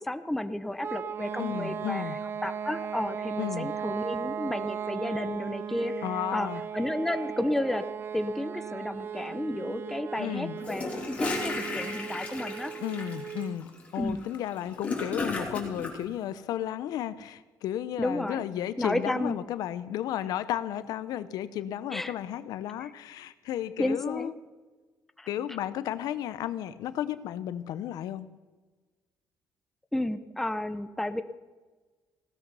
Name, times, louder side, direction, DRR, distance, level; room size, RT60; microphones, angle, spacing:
voice 1, 0.0-6.1 6.3-6.5 6.7-7.8 8.1-12.7 14.0-14.3 18.0-18.4 18.8-19.4 21.9-22.1 22.8-22.9 23.8-24.3 25.2-25.3 29.9-31.2, left 1 dB, 5° left, 10 dB, 0.7 m, -32 dB
sound 1, 0.8-13.6, right 7 dB, 35° right, 0.4 m, -37 dB
voice 2, 1.4-2.2 3.4-3.7 6.0-6.6 10.2-10.6 12.8-24.3 25.3-28.3, left 11 dB, 75° left, 14 dB, 0.8 m, -33 dB
Gurgling / Toilet flush, 10.6-15.9, left 3 dB, 20° left, 3.1 m, -34 dB
16.5 x 13.0 x 5.6 m, 1.3 s
cardioid pair, 140°, 7 cm